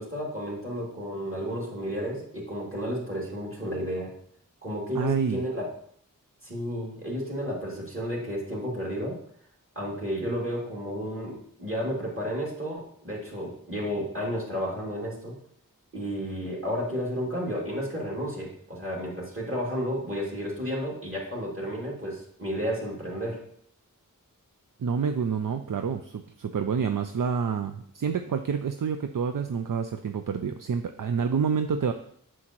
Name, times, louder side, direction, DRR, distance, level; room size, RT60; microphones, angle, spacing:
voice 1, 0.0-4.1 4.6-5.7 6.4-9.2 9.7-15.3 15.9-23.4, equal, 40° right, -3 dB, 2.7 m, -32 dB
voice 2, 4.9-5.4 24.8-31.9, right 6 dB, 70° right, 7 dB, 0.5 m, -28 dB
7.9 x 6.3 x 3.0 m, 0.63 s
wide cardioid pair, 40°, 34 cm